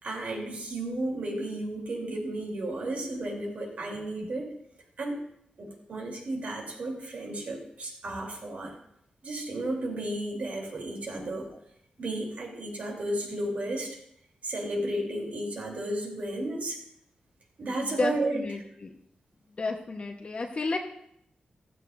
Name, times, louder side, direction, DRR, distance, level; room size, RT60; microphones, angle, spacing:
voice 1, 0.0-4.5 5.0-5.2 5.6-8.7 9.2-11.5 12.0-14.0 14.4-16.8 17.6-18.4, right 1 dB, 65° right, 0 dB, 3.3 m, -33 dB
voice 2, 17.8-18.9 19.6-20.8, left 3 dB, 45° left, 1 dB, 1.1 m, -32 dB
15.0 x 13.5 x 2.6 m, 0.73 s
wide cardioid pair, 90°, 3 cm